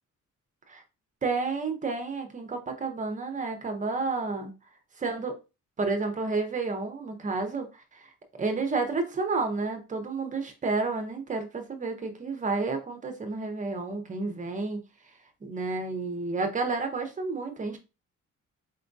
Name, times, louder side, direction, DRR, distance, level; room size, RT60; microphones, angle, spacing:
voice 1, 1.2-4.5 5.0-5.3 5.8-8.1 8.4-14.8 15.4-17.8, right 3 dB, 25° right, 0.6 m, -30 dB
4.3 x 3.5 x 2.6 m
wide cardioid pair, 180°, 32 cm